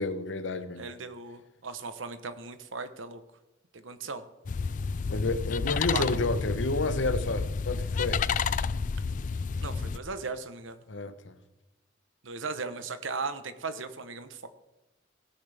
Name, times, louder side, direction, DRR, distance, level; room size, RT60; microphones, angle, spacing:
voice 1, 0.0-0.9 5.1-8.3 10.9-11.4, left 2 dB, 70° left, 0.9 m, -30 dB
voice 2, 0.8-3.2 3.7-4.2 5.9-6.1 9.6-10.8 12.2-14.5, right 4 dB, 85° right, 1.1 m, -37 dB
sound 1, 4.5-10.0, left 5 dB, 40° left, 0.3 m, -30 dB
17.5 x 9.7 x 3.5 m
head